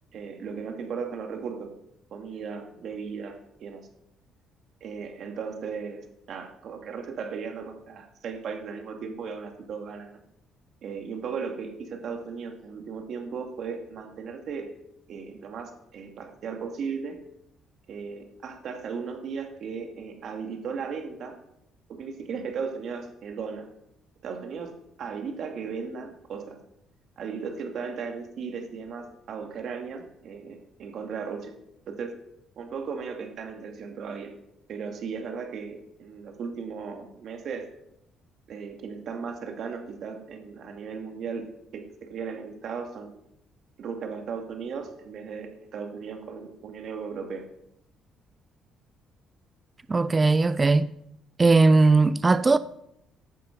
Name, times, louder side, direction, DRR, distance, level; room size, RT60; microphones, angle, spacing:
voice 1, 0.1-1.7 2.1-3.8 4.8-10.2 10.8-14.7 15.1-17.2 17.9-21.3 21.9-23.7 24.2-26.6 27.2-31.5 31.9-32.2 32.6-34.3 34.7-37.7 38.5-43.1 43.8-47.4, right 5 dB, 45° right, 2.2 m, -36 dB
voice 2, 49.9-50.9 51.4-52.6, right 3 dB, 15° right, 0.4 m, -19 dB
14.5 x 11.5 x 5.2 m
cardioid pair, 180°, 0 cm